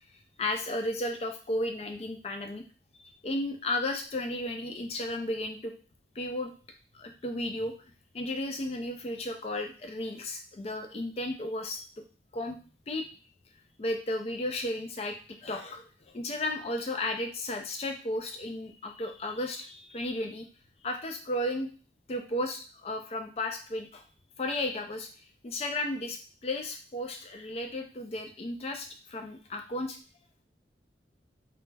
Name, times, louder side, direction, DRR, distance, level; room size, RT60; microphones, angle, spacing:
voice 1, 0.4-2.6 3.2-5.7 6.2-6.5 6.9-7.7 8.1-12.0 12.3-12.6 12.9-13.1 13.8-15.2 15.4-15.8 16.1-20.5 20.8-21.7 22.1-24.0 24.4-25.1 25.4-30.0, left 1 dB, 35° left, 5 dB, 0.4 m, -34 dB
2.2 x 2.0 x 3.2 m, 0.37 s
head